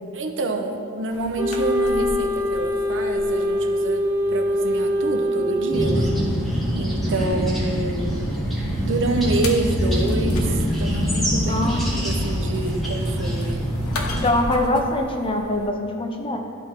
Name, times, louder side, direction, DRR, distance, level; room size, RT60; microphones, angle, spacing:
voice 1, 0.1-6.1 6.7-8.2 8.8-10.5 10.8-11.7 12.0-13.6, right 2 dB, 60° right, 4 dB, 0.6 m, -27 dB
sound 1, 1.1-15.7, left 1 dB, 90° left, 0.8 m, -38 dB
Wind instrument woodwind instrument, 1.4-6.5, equal, 20° right, 1.5 m, -24 dB
sound 2, 5.7-14.3, equal, ahead, 1.4 m, -24 dB
voice 2, 11.5-12.0 14.2-16.4, left 1 dB, 25° left, 2 dB, 0.5 m, -23 dB
12.0 x 4.3 x 2.9 m, 2.4 s
head